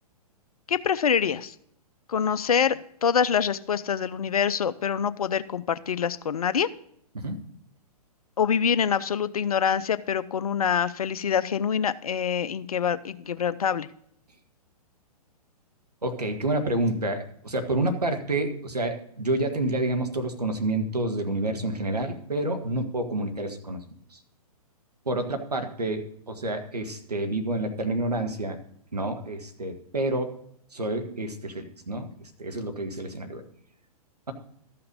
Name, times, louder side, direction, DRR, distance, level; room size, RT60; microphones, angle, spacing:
voice 1, 0.7-1.5 2.1-6.7 8.4-13.9, left 7 dB, 65° left, 15 dB, 0.6 m, -25 dB
voice 2, 16.0-23.8 24.1-24.2 25.0-28.6 28.9-30.3 30.7-32.1 32.4-33.4, right 2 dB, 80° right, 6 dB, 1.5 m, -28 dB
13.0 x 5.8 x 5.2 m, 0.68 s
figure-of-eight pair, 120°, 20 cm